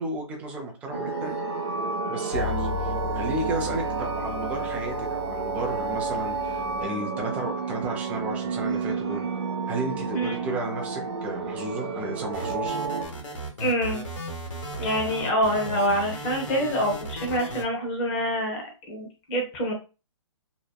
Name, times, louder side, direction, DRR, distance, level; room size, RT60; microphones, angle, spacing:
voice 1, 0.0-1.4 2.1-9.3 9.7-12.8, right 2 dB, 10° right, 1 dB, 0.4 m, -33 dB
sound 1, 0.9-13.1, right 5 dB, 60° right, 0.5 m, -31 dB
sound 2, 2.3-6.8, left 3 dB, 50° left, 1.0 m, -33 dB
sound 3, 12.3-17.6, right 1 dB, 90° left, 1.2 m, -35 dB
voice 2, 13.6-14.0 14.8-19.7, equal, 25° left, 3 dB, 0.9 m, -26 dB
2.8 x 2.0 x 2.3 m, 0.31 s
hypercardioid pair, 155°, 16 cm